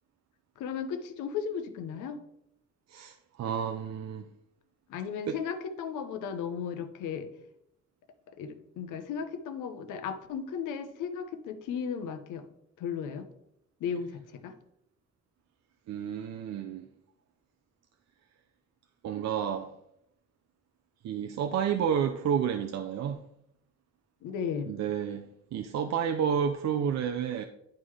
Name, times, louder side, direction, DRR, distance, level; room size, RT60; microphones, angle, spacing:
voice 1, 0.6-2.2 4.9-7.3 8.3-12.5 12.8-13.3 13.8-14.6 24.2-24.7, left 7 dB, 90° left, 0.8 m, -35 dB
voice 2, 2.9-4.2 5.3-5.4 15.9-16.9 19.0-19.7 21.0-23.2 24.7-27.4, right 8 dB, 60° right, 0.5 m, -30 dB
10.5 x 3.7 x 3.2 m
cardioid pair, 90°, 30 cm